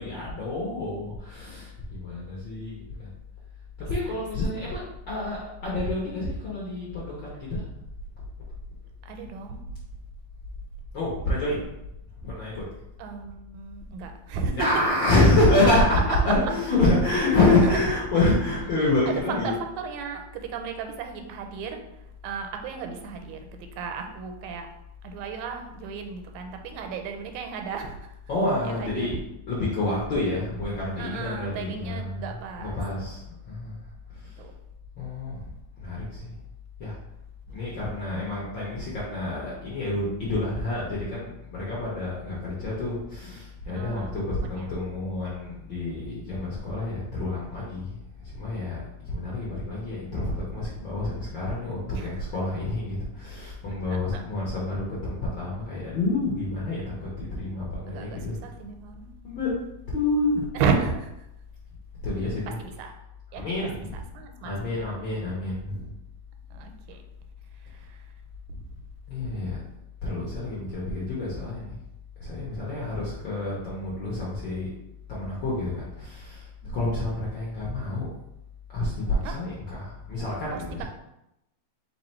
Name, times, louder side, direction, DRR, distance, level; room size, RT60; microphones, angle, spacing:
voice 1, 0.0-3.1 3.9-7.6 10.9-11.6 12.2-12.6 14.6-19.6 28.3-29.1 29.5-33.8 34.2-34.3 35.0-35.5 35.8-36.3 36.8-37.0 37.5-48.0 48.2-58.4 59.2-59.5 59.9-60.5 62.0-62.6 63.3-64.0 64.4-65.9 69.1-69.6 70.0-71.8 72.2-74.7 75.1-76.5 76.7-78.1 78.7-80.8, left 2 dB, 60° left, -6 dB, 1.2 m, -27 dB
voice 2, 3.8-4.4 9.0-9.6 13.0-14.7 17.6-17.8 19.1-24.7 25.0-28.1 28.6-29.2 31.0-32.8 34.4-34.5 37.5-37.6 43.7-44.8 51.9-52.2 53.9-54.2 57.9-59.1 60.5-61.3 62.2-62.9 63.3-64.9 66.5-67.0 67.5-68.1 76.6-77.1 79.2-79.4 80.5-80.9, right 5 dB, 90° right, 4 dB, 2.0 m, -34 dB
4.3 x 2.8 x 4.3 m, 0.86 s
omnidirectional pair, 3.3 m